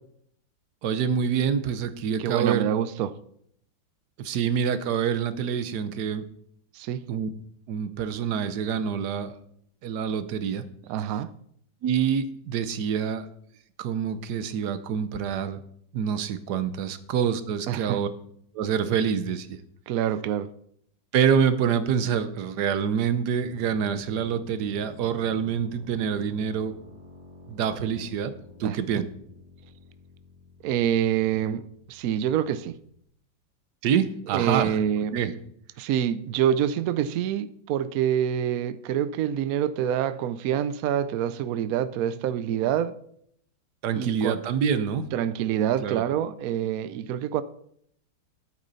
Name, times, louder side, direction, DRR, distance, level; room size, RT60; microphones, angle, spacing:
voice 1, 0.8-2.6 4.2-6.2 7.1-7.3 7.7-9.4 9.8-10.6 11.8-13.3 13.8-15.6 15.9-18.1 18.5-19.6 21.1-26.8 27.5-28.3 28.6-29.0 33.8-34.7 35.1-35.3 43.8-45.1 45.8-46.0, right 7 dB, 65° right, 1.3 m, -26 dB
voice 2, 2.2-3.1 6.7-7.1 10.9-11.3 17.7-18.0 19.9-20.5 28.6-28.8 30.6-32.8 34.3-35.1 35.8-42.9 43.9-44.4 45.1-47.4, right 10 dB, 80° right, 0.8 m, -26 dB
sound 1, 23.4-33.0, left 2 dB, 20° right, 1.7 m, -49 dB
13.0 x 8.5 x 4.1 m
omnidirectional pair, 2.2 m